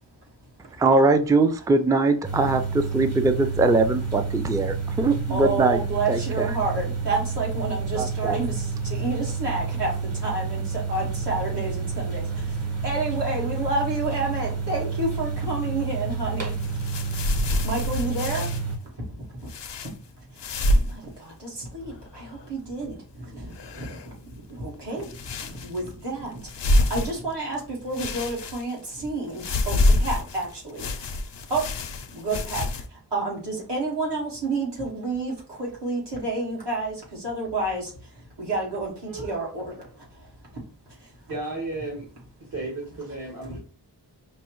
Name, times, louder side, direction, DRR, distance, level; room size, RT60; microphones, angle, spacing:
voice 1, 0.8-5.8 6.1-6.5 7.9-8.4, right 3 dB, 10° right, 8 dB, 0.3 m, -21 dB
sound 1, 2.2-18.8, right 5 dB, 35° right, 0.8 m, -29 dB
voice 2, 5.3-17.0 17.6-18.5 18.8-19.2 19.8-19.9 20.3-20.4 20.7-31.2 31.5-31.6 32.1-40.3 41.0-41.1 43.5-43.6, right 2 dB, 75° right, -5 dB, 1.5 m, -30 dB
sound 2, 16.5-18.6 19.5-19.9 20.4-21.0 21.3-21.4 21.8-22.5 23.5-24.2 25.0-25.9 26.4-27.5 27.9-28.9 29.4-32.9, left 1 dB, 80° left, 0.5 m, -26 dB
voice 3, 39.1-39.5 41.3-42.1 42.4-43.6, right 2 dB, 55° right, -3 dB, 1.2 m, -34 dB
5.3 x 2.0 x 3.0 m, 0.40 s
wide cardioid pair, 55°, 42 cm